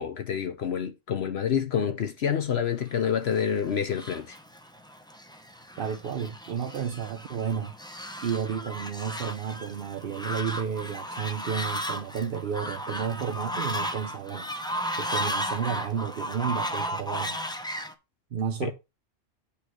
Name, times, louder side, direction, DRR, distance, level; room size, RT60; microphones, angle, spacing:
voice 1, 0.0-4.4 18.6-18.7, left 8 dB, 60° left, 0.9 m, -28 dB
Fowl, 3.1-17.9, equal, 5° left, 0.6 m, -35 dB
voice 2, 5.8-7.7 8.2-14.5 15.0-17.4 18.3-18.7, right 7 dB, 55° right, 0.8 m, -32 dB
8.5 x 3.2 x 6.4 m
omnidirectional pair, 1.3 m